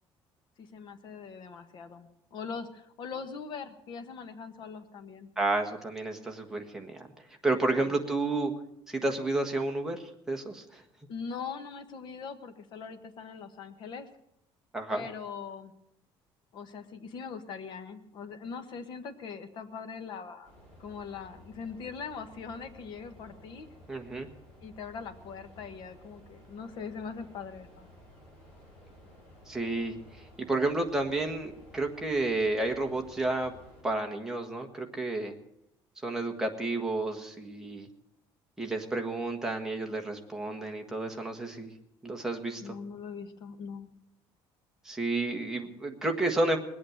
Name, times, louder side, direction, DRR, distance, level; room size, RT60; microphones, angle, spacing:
voice 1, 0.6-5.3 11.1-14.1 14.9-15.7 16.5-20.5 20.8-23.7 24.6-27.9 42.6-43.9, left 5 dB, 50° left, 9 dB, 1.3 m, -41 dB
voice 2, 5.4-7.0 7.4-8.5 8.9-10.0 10.3-10.8 14.7-15.0 23.9-24.3 29.5-30.0 30.5-33.5 33.8-35.3 36.0-37.9 38.6-41.7 42.0-42.7 44.8-46.6, right 2 dB, 5° right, 2 dB, 1.4 m, -31 dB
sound 1, 20.4-33.8, equal, 15° left, 7.9 m, -54 dB
20.5 x 8.7 x 7.9 m, 0.79 s
cardioid pair, 170°, 10 cm